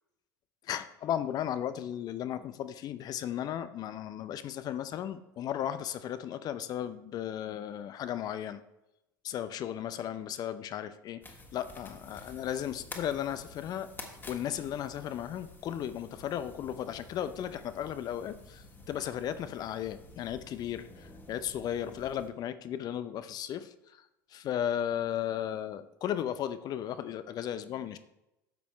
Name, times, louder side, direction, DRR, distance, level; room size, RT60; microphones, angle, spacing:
voice 1, 0.6-8.6 9.2-11.2 11.5-13.9 14.3-28.0, left 10 dB, 40° left, 12 dB, 0.5 m, -35 dB
sound 1, 11.2-22.3, left 2 dB, 20° left, 1.6 m, -50 dB
10.5 x 7.0 x 3.2 m, 0.88 s
figure-of-eight pair, 75°, 10 cm